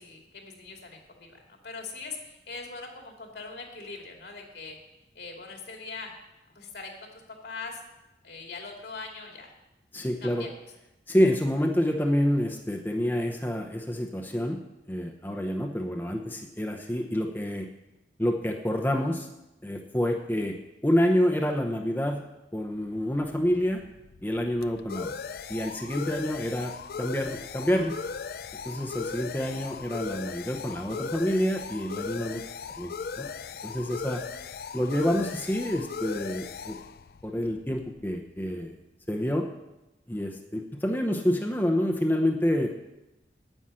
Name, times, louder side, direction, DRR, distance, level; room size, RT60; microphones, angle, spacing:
voice 1, 0.0-4.8 5.1-6.1 6.5-7.8 8.2-9.5 10.2-10.5 29.4-29.6, left 4 dB, 70° left, 1 dB, 2.5 m, -41 dB
voice 2, 9.9-10.5 11.1-14.6 14.9-17.7 18.2-19.3 19.6-20.6 20.8-22.2 22.5-23.8 24.2-25.1 25.5-26.7 27.0-28.0 28.6-32.4 32.8-33.3 33.6-34.2 34.7-36.8 37.2-38.7 39.1-39.5 40.1-42.7, equal, 10° left, 2 dB, 0.8 m, -27 dB
sound 1, 23.2-38.4, left 5 dB, 55° left, 0.4 m, -38 dB
9.8 x 9.0 x 7.6 m, 0.96 s
head